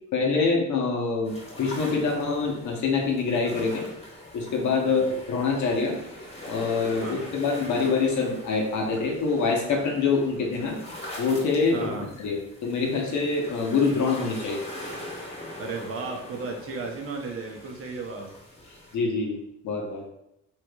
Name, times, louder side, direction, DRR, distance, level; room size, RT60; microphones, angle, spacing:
voice 1, 0.1-3.9 4.3-6.0 6.5-10.8 11.2-11.9 12.2-14.6 18.9-19.4 19.6-20.0, left 4 dB, 70° left, 0 dB, 0.9 m, -25 dB
sound 1, 1.2-19.0, left 1 dB, 20° left, 1.1 m, -42 dB
voice 2, 11.7-12.1 15.6-18.3, right 4 dB, 50° right, 2 dB, 0.7 m, -34 dB
3.3 x 3.0 x 2.3 m, 0.79 s
cardioid pair, 90°, 30 cm